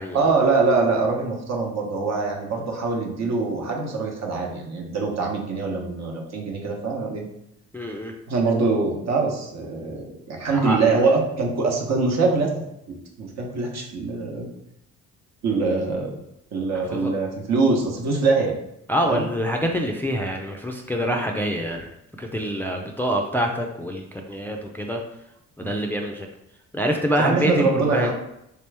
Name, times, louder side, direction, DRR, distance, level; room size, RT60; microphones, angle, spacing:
voice 1, 0.1-7.2 8.3-12.5 12.9-14.5 15.4-16.1 16.5-18.5 19.0-19.3 25.6-25.7 27.2-28.1, right 4 dB, 60° right, 1 dB, 1.0 m, -23 dB
voice 2, 7.7-8.1 10.5-11.0 16.9-17.1 18.9-21.9 22.2-25.0 25.6-26.3 26.7-28.1, equal, 5° left, 2 dB, 0.3 m, -26 dB
3.4 x 2.9 x 3.3 m, 0.81 s
cardioid pair, 90°, 30 cm